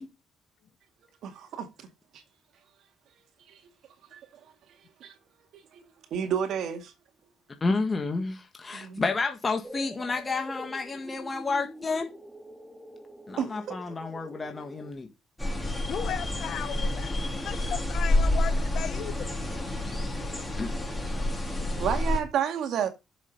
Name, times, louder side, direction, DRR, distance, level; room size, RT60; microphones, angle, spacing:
voice 1, 1.2-1.9 3.5-3.6 4.1-4.2 5.0-5.1 5.7-5.8 6.1-6.9 8.7-9.0 13.4-13.8 21.8-22.9, right 8 dB, 75° right, 2.2 m, -30 dB
voice 2, 7.6-12.1 13.3-15.1 20.6-20.7, left 3 dB, 30° left, 1.8 m, -30 dB
sound 1, 9.6-14.9, right 1 dB, 5° right, 2.1 m, -45 dB
sound 2, 15.4-22.2, left 1 dB, 10° left, 4.9 m, -28 dB
voice 3, 15.9-17.1 17.4-19.3, left 9 dB, 70° left, 1.3 m, -35 dB
7.7 x 7.3 x 5.4 m
cardioid pair, 90°, 0 cm